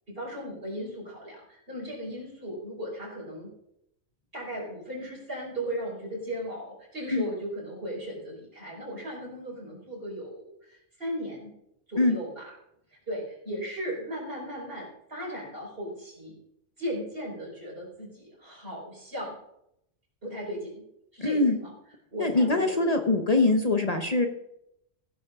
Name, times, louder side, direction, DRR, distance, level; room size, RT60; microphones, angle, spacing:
voice 1, 0.1-3.5 4.3-11.5 11.9-12.5 13.1-16.3 16.8-19.4 20.2-20.8 21.1-21.7 22.1-22.9, equal, 55° right, -3 dB, 4.9 m, -36 dB
voice 2, 21.2-21.6 22.2-24.3, left 2 dB, 35° left, 5 dB, 1.0 m, -23 dB
15.5 x 11.5 x 3.6 m, 0.79 s
omnidirectional pair, 1.2 m